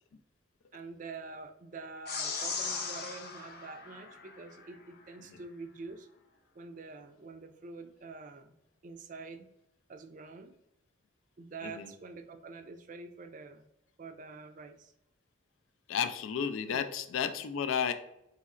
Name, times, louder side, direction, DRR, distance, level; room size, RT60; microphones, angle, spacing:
voice 1, 0.7-6.1 6.5-8.6 8.8-9.5 9.9-10.5 11.4-13.7 14.0-14.9 16.7-16.8, right 4 dB, 40° right, 8 dB, 0.3 m, -46 dB
sound 1, 2.1-4.7, left 4 dB, 55° left, 0.7 m, -38 dB
voice 2, 15.9-17.9, left 7 dB, 85° left, 9 dB, 0.4 m, -32 dB
4.1 x 2.9 x 2.4 m, 0.83 s
head